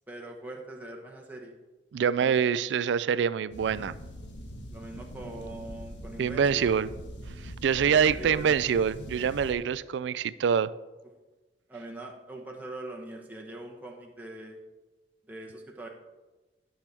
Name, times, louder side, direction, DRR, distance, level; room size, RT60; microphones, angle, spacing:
voice 1, 0.1-1.6 2.2-2.4 4.7-6.8 7.8-8.5 11.7-14.6 15.3-15.9, right 1 dB, 10° right, 0 dB, 1.0 m, -42 dB
voice 2, 1.9-3.9 6.2-6.9 7.4-10.7, right 7 dB, 75° right, 18 dB, 0.3 m, -25 dB
sound 1, 3.5-9.5, equal, 85° left, 1.3 m, -43 dB
12.0 x 6.5 x 3.5 m, 1.2 s
head